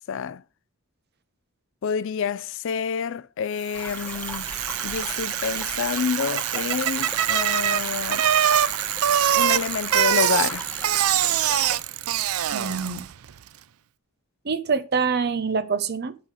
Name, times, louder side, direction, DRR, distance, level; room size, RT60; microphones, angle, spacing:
voice 1, 0.1-0.4 1.8-4.5 4.8-8.3 9.4-10.7, left 6 dB, 60° left, 0.4 m, -28 dB
sound 1, 3.7-11.8, left 1 dB, 5° left, 1.4 m, -38 dB
Bicycle, 3.7-13.1, right 10 dB, 80° right, 0.5 m, -24 dB
voice 2, 12.5-13.1 14.4-16.2, right 5 dB, 45° right, 0.8 m, -25 dB
10.5 x 5.6 x 4.8 m
head